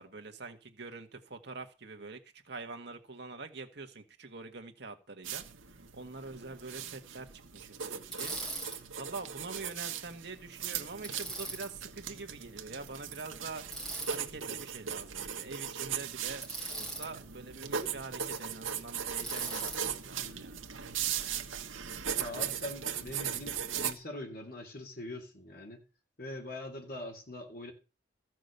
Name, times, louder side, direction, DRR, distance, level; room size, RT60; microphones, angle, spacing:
voice 1, 0.0-5.4 5.7-8.4 9.0-13.6 14.1-20.6, right 3 dB, 55° right, 1.7 m, -45 dB
sound 1, 5.2-23.9, right 8 dB, 80° right, 1.3 m, -38 dB
Bicycle, 8.1-8.8 11.0-11.7 13.7-14.2 16.4-17.1 19.2-19.9, right 3 dB, ahead, 3.3 m, -39 dB
voice 2, 22.2-25.8 26.2-27.7, left 1 dB, 45° left, 3.1 m, -42 dB
14.5 x 6.3 x 6.7 m
head